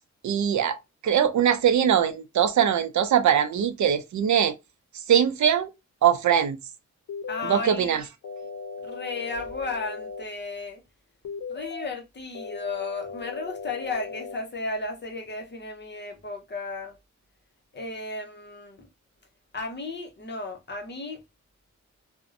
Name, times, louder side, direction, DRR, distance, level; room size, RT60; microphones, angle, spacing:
voice 1, 0.2-4.5 4.9-5.7 6.0-6.6 7.5-8.0, right 9 dB, 70° right, 0.5 m, -22 dB
sound 1, 7.1-7.7 8.2-10.2 11.2-11.9 12.3-14.3, left 4 dB, 85° left, 0.6 m, -37 dB
voice 2, 7.3-8.0 8.8-10.8 11.5-17.0 17.7-18.9 19.5-21.2, left 3 dB, 35° left, 0.6 m, -34 dB
2.5 x 2.1 x 2.5 m
wide cardioid pair, 95°, 30 cm